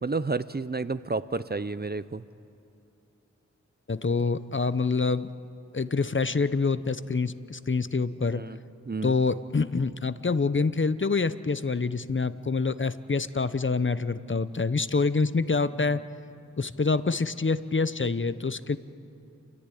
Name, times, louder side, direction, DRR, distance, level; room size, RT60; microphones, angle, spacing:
voice 1, 0.0-2.2 8.3-8.6 8.9-9.2, right 3 dB, 35° right, 15 dB, 0.6 m, -30 dB
voice 2, 3.9-5.3 5.7-8.4 9.0-16.0 16.6-18.8, left 4 dB, 40° left, 14 dB, 0.7 m, -26 dB
29.0 x 14.0 x 10.0 m, 2.7 s
wide cardioid pair, 55°, 30 cm